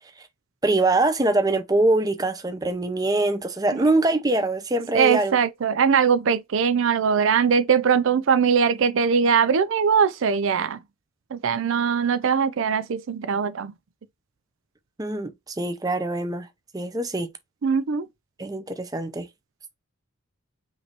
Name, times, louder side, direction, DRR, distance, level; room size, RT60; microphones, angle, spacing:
voice 1, 0.6-5.4 15.0-16.5 16.7-17.3 18.4-19.3, right 2 dB, 15° right, 0.6 m, -23 dB
voice 2, 4.9-10.8 11.3-13.7 17.6-18.1, right 6 dB, 60° right, 0.4 m, -21 dB
5.4 x 3.2 x 2.9 m
head